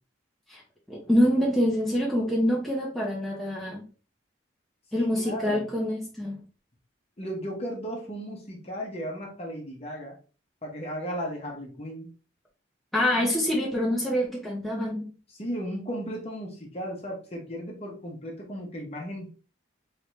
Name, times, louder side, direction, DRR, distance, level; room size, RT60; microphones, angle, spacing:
voice 1, 0.9-3.8 4.9-6.4 12.9-15.1, equal, ahead, -4 dB, 0.8 m, -26 dB
voice 2, 4.9-5.7 7.2-10.2 10.6-12.1 15.3-19.3, equal, 30° left, 0 dB, 1.0 m, -35 dB
3.7 x 3.3 x 3.2 m, 0.35 s
head